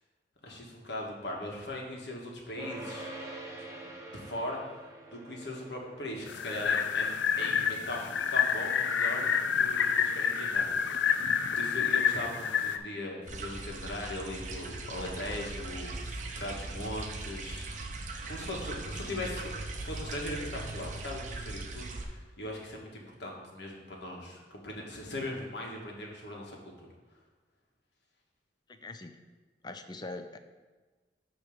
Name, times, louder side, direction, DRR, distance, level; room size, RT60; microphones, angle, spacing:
voice 1, 0.4-3.1 3.6-3.7 4.0-4.6 5.1-7.6 7.9-9.3 9.6-10.9 11.5-17.7 18.3-19.5 19.7-26.6, left 1 dB, 70° left, -1 dB, 1.5 m, -39 dB
sound 1, 2.6-13.9, right 2 dB, 15° right, 1.1 m, -48 dB
sound 2, 6.3-12.8, left 7 dB, 90° left, 0.5 m, -28 dB
sound 3, 13.3-22.0, right 3 dB, 40° right, 0.7 m, -39 dB
voice 2, 28.7-29.2 29.6-30.4, left 2 dB, 25° left, 8 dB, 0.5 m, -42 dB
9.0 x 3.2 x 6.4 m, 1.3 s
head